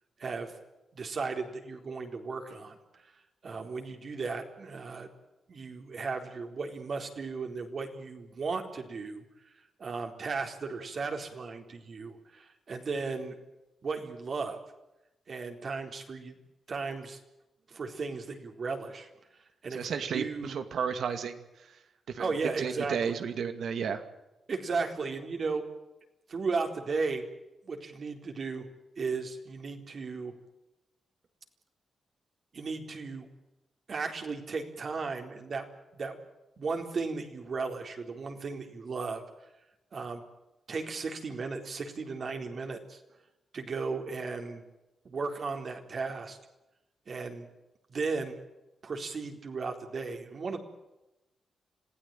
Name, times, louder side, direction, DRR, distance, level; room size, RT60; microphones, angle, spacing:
voice 1, 0.2-0.5 0.9-3.0 3.4-5.1 5.5-9.5 9.8-13.4 13.8-14.6 15.3-16.4 16.7-17.2 17.7-19.1 19.6-20.6 22.2-23.2 24.5-25.6 26.3-27.3 27.6-28.7 29.0-30.3 32.5-33.3 33.9-35.7 36.0-36.2 36.6-39.2 39.9-40.2 40.7-43.0 43.5-44.6 45.0-46.4 47.1-47.5 47.9-48.4 48.8-50.6, right 4 dB, 55° right, 4 dB, 4.1 m, -35 dB
voice 2, 19.7-21.4 22.1-22.3 22.6-24.0, right 6 dB, 75° right, 9 dB, 2.4 m, -32 dB
26.5 x 16.5 x 9.2 m, 0.97 s
cardioid pair, 90°, 0 cm